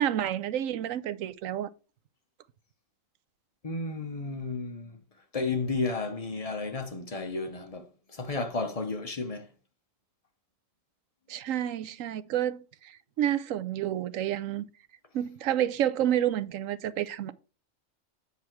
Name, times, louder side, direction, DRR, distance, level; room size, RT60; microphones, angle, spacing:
voice 1, 0.0-1.7 11.3-14.7 15.1-17.3, right 11 dB, 75° right, 1.0 m, -29 dB
voice 2, 3.6-5.0 5.3-9.5, left 3 dB, 30° left, 0.8 m, -33 dB
8.3 x 4.9 x 4.4 m
omnidirectional pair, 1.4 m